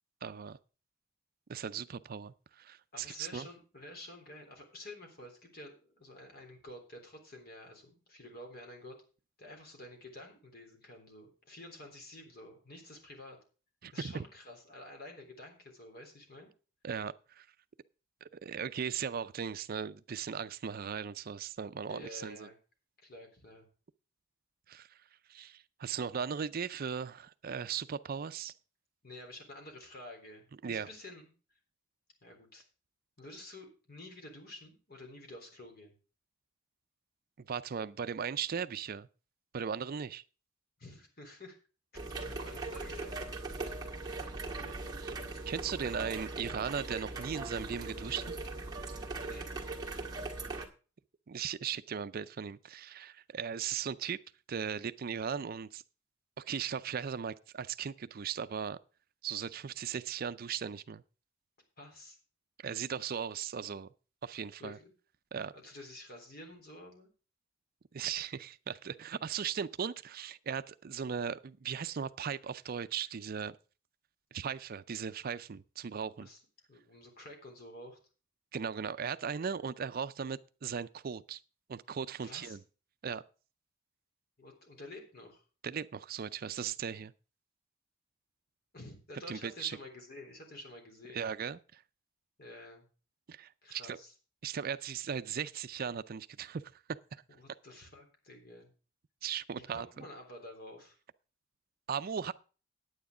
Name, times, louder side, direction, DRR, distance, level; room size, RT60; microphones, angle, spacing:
voice 1, 0.2-0.6 1.5-3.5 13.8-13.9 16.8-17.5 18.2-22.5 24.7-25.0 25.3-28.5 30.6-30.9 37.5-39.1 39.5-40.2 45.0-45.1 45.5-48.3 51.3-54.2 54.5-55.8 56.4-58.8 59.2-61.0 62.6-63.9 64.2-64.8 65.3-65.5 67.9-73.5 74.3-76.3 78.5-81.4 81.7-82.6 83.0-83.2 85.6-87.1 89.3-89.8 91.1-91.8 93.3-94.0 94.4-96.6 97.1-97.2 99.2-100.0 101.9-102.3, right 7 dB, 50° right, 0.4 m, -38 dB
voice 2, 2.9-9.0 9.4-13.4 13.9-16.5 21.9-22.6 23.0-23.7 29.0-31.3 32.2-32.6 33.2-35.9 40.8-41.6 42.2-43.2 44.3-45.0 49.2-49.5 61.8-62.2 64.6-64.9 65.5-67.1 76.2-76.4 76.7-78.0 82.2-82.6 84.4-85.4 88.7-91.2 92.4-92.9 93.6-94.1 97.3-98.7 99.5-101.0, left 1 dB, 50° left, 3.7 m, -50 dB
sound 1, 41.9-50.7, right 2 dB, 20° right, 1.7 m, -40 dB
9.5 x 9.4 x 4.9 m
head